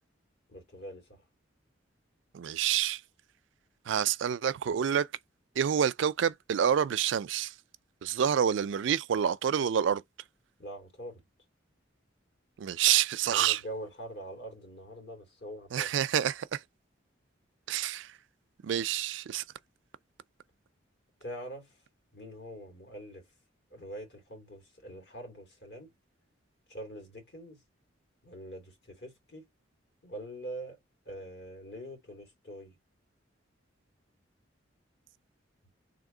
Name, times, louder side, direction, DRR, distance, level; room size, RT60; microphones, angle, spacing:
voice 1, 0.5-1.3 10.6-11.2 13.3-15.9 21.2-21.8 22.1-23.3 23.7-25.9 26.7-27.6 28.2-29.5 30.0-30.8 31.0-32.8, right 1 dB, 60° left, 2.4 m, -44 dB
voice 2, 2.3-3.0 3.9-5.1 5.6-7.5 8.0-10.0 12.6-13.6 15.7-16.6 17.7-18.1 18.6-19.4, right 9 dB, 70° right, 0.3 m, -28 dB
3.6 x 2.7 x 3.8 m
head